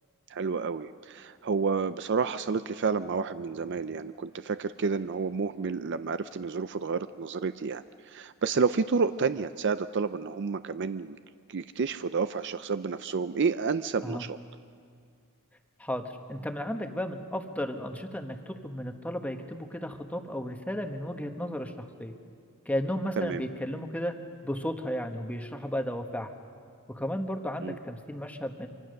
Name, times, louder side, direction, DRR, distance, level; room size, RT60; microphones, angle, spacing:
voice 1, 0.3-11.2 11.5-14.4 23.2-23.4 27.6-27.8, right 5 dB, 55° right, 12 dB, 0.5 m, -30 dB
voice 2, 16.3-22.1 22.6-24.1 24.4-26.3 26.9-28.7, equal, 5° left, 6 dB, 1.2 m, -34 dB
25.0 x 25.0 x 6.5 m, 2.2 s
head